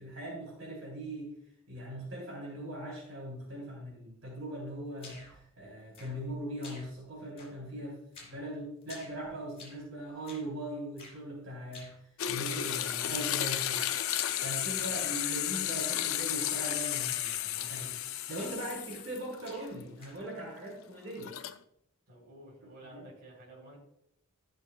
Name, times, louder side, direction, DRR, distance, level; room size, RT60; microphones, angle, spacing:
voice 1, 0.0-1.3 1.7-11.9 12.3-13.9 14.4-18.0 18.3-21.4 22.9-23.0, right 1 dB, 70° right, -3 dB, 3.3 m, -40 dB
sound 1, 5.0-5.4 5.9-6.3 6.6-7.1 7.4-7.8 8.1-8.4 8.8-9.9 10.2-10.5 11.0-11.2 11.7-12.0 12.4-12.7 13.1-13.3 13.7-14.0 14.3-15.4 16.0-16.2 16.6-16.8 17.2-17.5 17.7-18.0 18.3-19.1 19.4-20.3, left 3 dB, 30° left, 2.8 m, -52 dB
sound 2, 12.2-19.4 19.8-19.9 21.1-21.6, left 11 dB, 70° left, 0.5 m, -33 dB
voice 2, 14.8-15.2 22.1-23.8, equal, 50° right, -4 dB, 3.7 m, -52 dB
14.0 x 6.3 x 2.3 m, 0.75 s
head